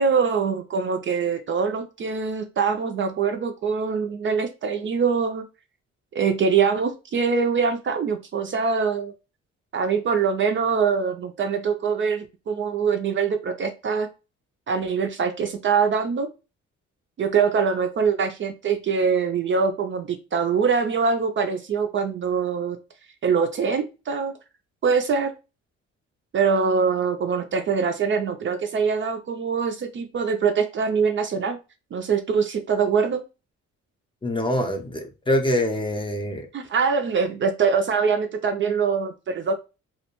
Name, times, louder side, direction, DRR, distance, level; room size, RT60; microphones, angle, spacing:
voice 1, 0.0-5.4 6.2-9.1 9.7-14.1 14.7-16.3 17.2-22.8 23.2-24.3 24.8-25.3 26.3-31.6 31.9-33.2 36.5-39.5, right 5 dB, 40° right, 0.4 m, -23 dB
voice 2, 34.2-36.5, left 1 dB, 15° left, 0.5 m, -24 dB
2.3 x 2.1 x 2.9 m
cardioid pair, 90°, 30 cm